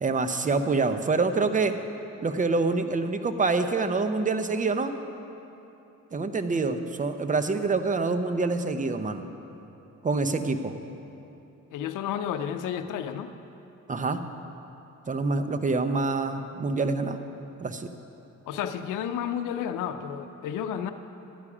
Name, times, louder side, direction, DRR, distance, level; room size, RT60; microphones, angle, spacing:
voice 1, 0.0-1.7 2.2-4.9 6.1-9.2 10.0-10.7 13.9-14.2 15.1-17.2 17.6-17.9, right 3 dB, 25° right, 8 dB, 0.8 m, -26 dB
voice 2, 11.7-13.3 18.5-20.9, left 9 dB, 85° left, 8 dB, 0.6 m, -31 dB
12.5 x 9.7 x 4.9 m, 3.0 s
cardioid pair, 80°, 30 cm